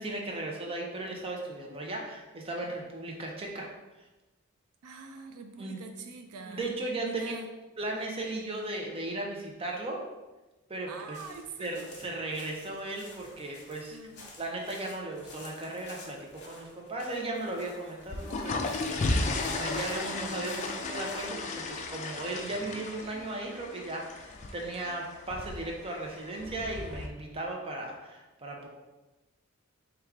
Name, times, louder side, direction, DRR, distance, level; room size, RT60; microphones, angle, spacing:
voice 1, 0.0-3.7 5.6-5.8 6.5-7.3 7.8-10.0 10.7-11.2 11.6-14.0 14.4-28.7, right 2 dB, 25° right, 0 dB, 0.6 m, -36 dB
voice 2, 4.8-6.7 7.0-7.5 10.9-11.9 13.9-14.4, right 4 dB, 85° right, 5 dB, 0.4 m, -44 dB
sound 1, 11.1-21.3, left 2 dB, 50° left, 1.0 m, -51 dB
sound 2, 18.0-27.1, left 3 dB, 35° left, 0.3 m, -35 dB
4.6 x 2.3 x 3.5 m, 1.1 s
head